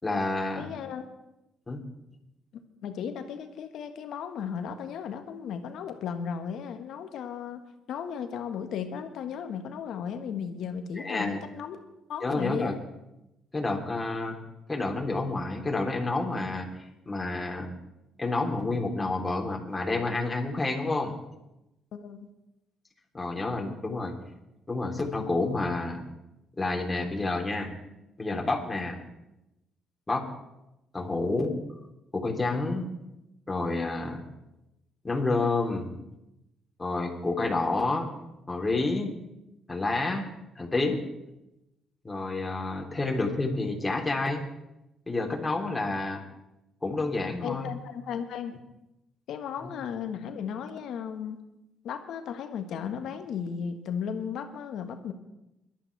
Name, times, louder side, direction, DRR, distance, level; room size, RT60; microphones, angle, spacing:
voice 1, 0.0-0.7 1.7-1.8 11.0-11.4 12.2-12.7 13.5-14.4 14.7-16.7 17.1-17.7 18.2-21.1 23.1-24.1 24.7-26.0 26.6-27.7 28.2-29.0 30.1-30.2 30.9-31.6 32.1-32.9 33.5-34.3 35.0-35.9 36.8-38.1 38.5-39.1 39.7-40.3 40.6-41.0 42.0-44.4 45.1-46.2 46.8-47.7 49.6-49.7, left 2 dB, 25° left, 1 dB, 3.5 m, -29 dB
voice 2, 0.6-1.0 2.8-7.6 7.9-11.8 12.1-12.8 21.9-22.3 47.4-48.5 49.3-51.4 51.8-55.1, left 7 dB, 70° left, 7 dB, 1.5 m, -35 dB
22.5 x 12.0 x 3.4 m, 0.92 s
hypercardioid pair, 50°, 0 cm